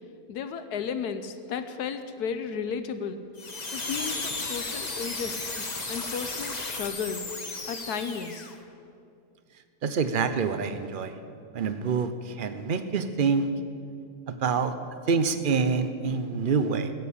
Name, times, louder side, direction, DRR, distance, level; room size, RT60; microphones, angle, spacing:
voice 1, 0.3-3.2 3.7-7.2 7.7-8.5, left 6 dB, 80° left, 9 dB, 1.3 m, -34 dB
sound 1, 3.4-8.6, left 3 dB, 30° left, 1.2 m, -34 dB
voice 2, 9.8-11.1 11.5-12.1 12.4-13.5 14.3-14.7 15.1-16.9, right 5 dB, 45° right, 10 dB, 0.7 m, -26 dB
16.5 x 7.6 x 8.4 m, 2.4 s
omnidirectional pair, 1.7 m